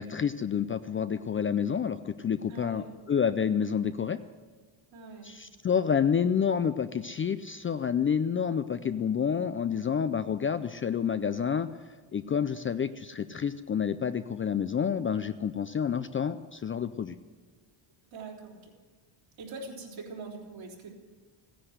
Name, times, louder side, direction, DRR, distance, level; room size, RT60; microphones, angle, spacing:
voice 1, 0.0-4.2 5.2-11.7 12.1-17.2, left 7 dB, 25° left, 11 dB, 0.4 m, -29 dB
voice 2, 2.5-2.9 4.9-5.3 18.1-18.7 19.4-21.1, right 3 dB, 65° right, -1 dB, 3.7 m, -43 dB
15.5 x 10.0 x 7.9 m, 1.4 s
cardioid pair, 105°, 50 cm